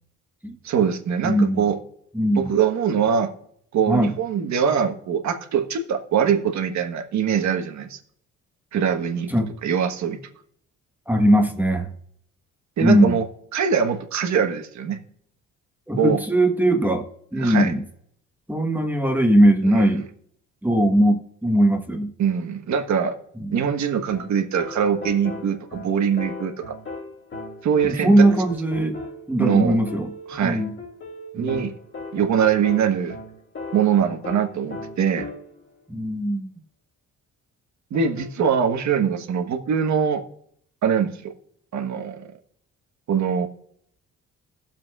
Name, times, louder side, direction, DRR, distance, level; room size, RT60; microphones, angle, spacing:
voice 1, 0.6-1.8 2.4-3.3 3.7-8.0 8.7-9.3 9.6-10.2 12.8-13.2 13.5-15.0 16.0-16.2 17.3-17.7 22.2-23.2 23.5-26.8 27.6-28.3 29.4-29.8 30.3-30.6 31.3-31.7 32.1-33.2 33.7-35.3 37.9-40.2 40.8-41.3 41.7-42.3 43.1-43.5, right 7 dB, 65° right, 6 dB, 1.4 m, -22 dB
voice 2, 1.2-1.6 2.1-2.5 3.9-4.1 9.3-9.5 11.1-11.9 12.8-13.2 15.9-17.1 17.3-17.8 18.5-20.0 20.6-22.1 23.4-23.6 27.8-29.0 29.3-30.1 30.4-30.7 31.3-31.7 35.9-36.5, right 1 dB, 5° right, 3 dB, 1.4 m, -20 dB
sound 1, 24.1-35.7 37.9-38.8, left 2 dB, 45° left, 2.7 m, -37 dB
19.5 x 7.4 x 2.5 m, 0.66 s
cardioid pair, 90°, 30 cm